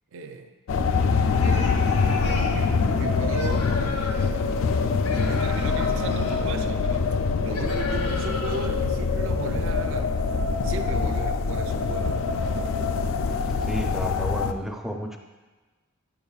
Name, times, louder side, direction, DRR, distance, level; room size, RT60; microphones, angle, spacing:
voice 1, 0.1-0.5 1.1-4.7 5.1-7.1 7.4-10.1 10.6-12.2, right 4 dB, 60° right, 7 dB, 0.5 m, -36 dB
sound 1, 0.7-14.5, left 4 dB, 60° left, 0.4 m, -24 dB
sound 2, 1.3-2.6 3.3-4.3 5.0-6.4 7.5-8.7, left 3 dB, 80° left, 0.8 m, -36 dB
voice 2, 13.6-15.2, equal, ahead, 2 dB, 0.4 m, -32 dB
8.7 x 6.9 x 2.3 m, 1.2 s
head